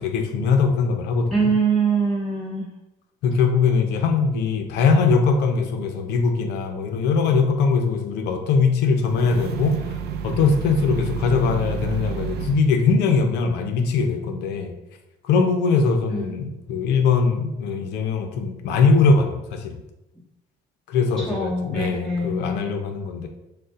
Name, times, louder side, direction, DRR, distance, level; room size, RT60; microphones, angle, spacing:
voice 1, 0.0-1.3 3.2-9.8 10.2-14.7 15.3-19.7 20.9-23.3, left 4 dB, 80° left, 5 dB, 0.6 m, -21 dB
voice 2, 1.3-2.7 16.1-16.3 21.2-22.7, right 4 dB, 5° left, -8 dB, 1.5 m, -24 dB
sound 1, 9.0-12.7, right 7 dB, 80° right, 0.4 m, -30 dB
6.4 x 2.2 x 2.4 m, 0.93 s
cardioid pair, 110°, 17 cm